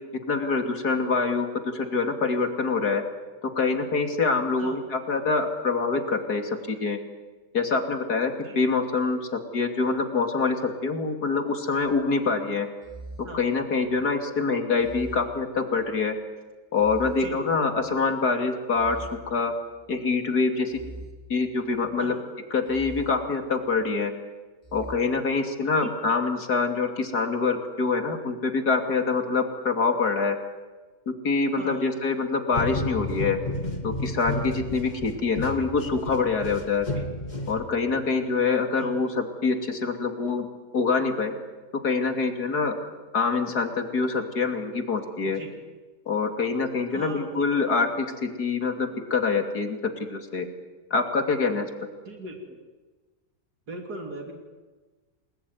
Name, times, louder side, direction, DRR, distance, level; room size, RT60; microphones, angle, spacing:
voice 1, 0.3-3.0 3.4-7.0 7.5-12.7 13.3-16.1 16.7-19.5 19.9-20.8 21.3-22.1 22.5-24.1 24.7-30.4 31.1-33.4 33.8-36.9 37.5-40.4 40.7-41.3 41.8-42.7 43.1-45.4 46.1-49.8 50.1-50.5 50.9-51.7, left 4 dB, 80° left, 5 dB, 3.3 m, -25 dB
sound 1, 11.8-12.2 12.8-14.1 14.8-16.1 16.8-18.0 18.7-20.0 20.7-22.0 22.7-24.0 24.6-25.0, right 2 dB, 15° right, 3.9 m, -44 dB
sound 2, 32.5-38.0, left 1 dB, 25° left, 2.4 m, -32 dB
voice 2, 45.2-45.6 46.9-47.4 52.0-52.6 53.7-54.3, right 2 dB, 80° right, 3 dB, 3.5 m, -39 dB
29.0 x 20.5 x 9.6 m, 1.3 s
omnidirectional pair, 1.7 m